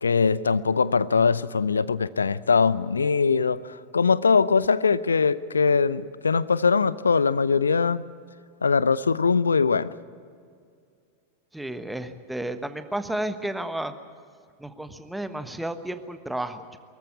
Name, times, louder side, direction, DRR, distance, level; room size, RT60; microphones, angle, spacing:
voice 1, 0.0-8.0 8.6-9.9, left 5 dB, 80° left, 19 dB, 0.6 m, -22 dB
voice 2, 11.5-13.9 14.6-16.8, right 1 dB, 5° right, 10 dB, 1.2 m, -32 dB
23.5 x 14.5 x 9.7 m, 2.2 s
figure-of-eight pair, 90°, 0 cm